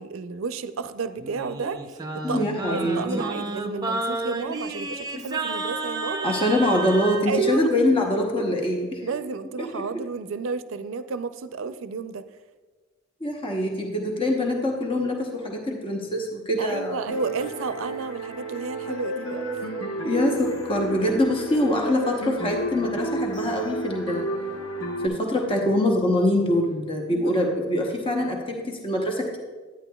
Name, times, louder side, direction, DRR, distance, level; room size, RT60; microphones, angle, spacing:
voice 1, 0.0-2.0 2.3-6.3 7.3-7.7 9.0-12.2 16.6-19.5 27.1-27.4, right 5 dB, 75° right, 12 dB, 0.4 m, -31 dB
Singing, 1.2-7.2, right 2 dB, 20° right, 0.5 m, -31 dB
voice 2, 2.2-3.3 6.2-9.0 9.7-9.8 13.2-17.0 20.0-24.3 25.0-29.4, left 1 dB, 25° left, 1 dB, 0.9 m, -24 dB
sound 1, 17.1-25.1, right 2 dB, 70° left, 1.0 m, -31 dB
11.0 x 9.3 x 2.3 m, 1.4 s
head